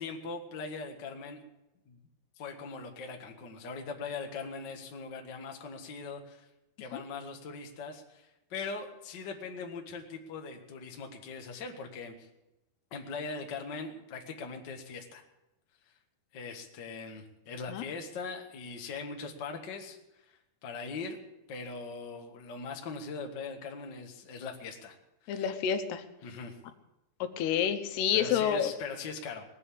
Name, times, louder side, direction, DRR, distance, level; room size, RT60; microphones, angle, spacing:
voice 1, 0.0-1.4 1.9-2.0 2.4-6.5 6.8-12.3 12.9-15.2 16.3-21.2 21.5-24.9 25.2-25.5 26.2-26.6 28.1-29.4, left 4 dB, 50° left, 2 dB, 1.3 m, -41 dB
voice 2, 25.3-26.0 27.2-28.7, left 9 dB, 80° left, 8 dB, 3.1 m, -29 dB
19.0 x 7.7 x 8.5 m, 0.95 s
omnidirectional pair, 4.6 m